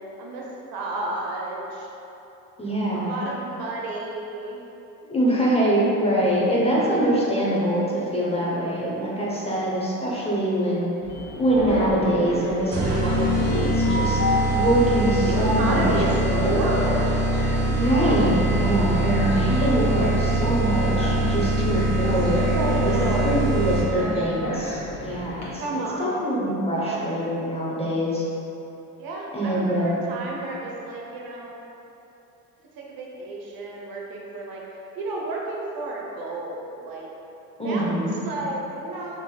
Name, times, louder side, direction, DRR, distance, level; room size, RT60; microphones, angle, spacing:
voice 1, 0.7-1.9 2.9-4.6 5.0-5.1 15.2-17.2 17.8-18.7 22.5-23.3 25.6-26.3 26.7-27.1 29.0-31.5 32.8-34.6 35.0-37.1 37.6-37.9 38.2-39.2, right 2 dB, 55° right, -3 dB, 0.7 m, -31 dB
voice 2, 2.6-3.1 5.1-10.9 11.4-14.2 14.5-15.9 16.3-16.6 17.7-23.0 23.2-25.6 26.0-28.2 29.3-30.0 37.6-38.2, right 1 dB, 15° left, -6 dB, 0.8 m, -24 dB
Train, 11.0-25.4, equal, 40° left, 1.1 m, -31 dB
sound 1, 12.7-24.1, right 1 dB, 35° right, 1.0 m, -23 dB
3.9 x 3.0 x 2.3 m, 3.0 s
hypercardioid pair, 65°, 42 cm